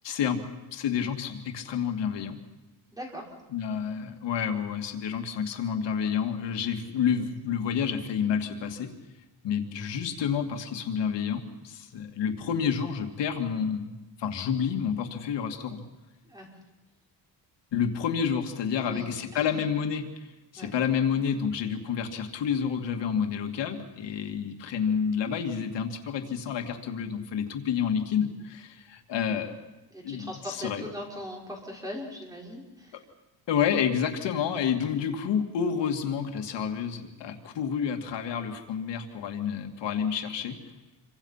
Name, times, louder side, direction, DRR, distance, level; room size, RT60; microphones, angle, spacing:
voice 1, 0.0-0.4 0.7-2.4 3.5-8.9 9.4-13.9 14.2-15.8 17.7-20.1 20.5-29.5 30.0-30.9 33.5-40.6, left 7 dB, 80° left, 4 dB, 2.4 m, -29 dB
voice 2, 2.9-3.3 16.3-16.5 18.8-19.4 20.6-20.7 29.9-33.0, equal, 10° right, -1 dB, 5.4 m, -40 dB
28.0 x 24.5 x 5.8 m, 1.1 s
cardioid pair, 165°, 42 cm